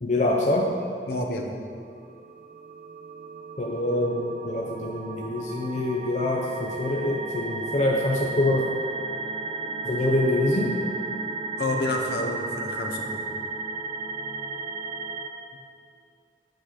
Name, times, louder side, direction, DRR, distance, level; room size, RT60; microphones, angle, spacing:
voice 1, 0.0-0.7 3.6-8.7 9.8-10.8, left 1 dB, 40° left, -2 dB, 0.6 m, -25 dB
voice 2, 1.1-1.6 11.6-13.2, left 2 dB, 65° left, 1 dB, 0.9 m, -29 dB
sound 1, 2.0-15.3, right 3 dB, 40° right, 0.5 m, -34 dB
9.0 x 3.9 x 6.4 m, 2.4 s
head